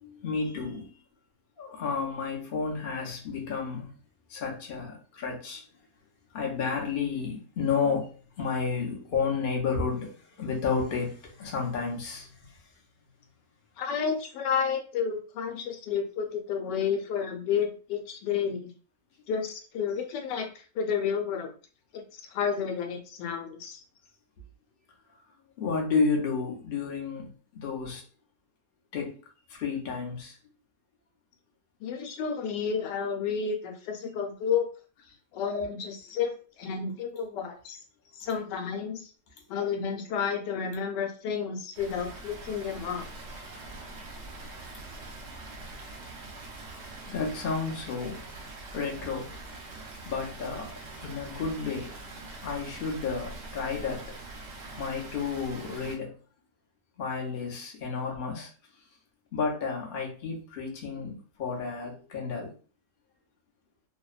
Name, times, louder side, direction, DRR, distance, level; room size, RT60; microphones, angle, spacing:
voice 1, 0.0-0.9 1.6-3.9 4.3-5.6 6.3-8.1 8.4-12.5 25.6-28.0 28.9-29.2 29.5-30.4 44.1-44.2 45.5-45.7 47.1-48.2 48.7-49.3 50.0-52.0 52.4-54.1 54.8-56.1 57.0-58.5 59.3-62.5, left 5 dB, 60° left, -1 dB, 0.5 m, -31 dB
voice 2, 13.8-18.7 19.3-21.5 21.9-22.0 22.3-23.8 31.8-34.7 35.3-37.8 38.1-39.1 39.5-43.0, left 6 dB, 85° left, 3 dB, 1.2 m, -31 dB
Water, 41.7-56.0, right 2 dB, 60° right, 0.8 m, -43 dB
2.8 x 2.1 x 2.3 m, 0.38 s
omnidirectional pair, 1.8 m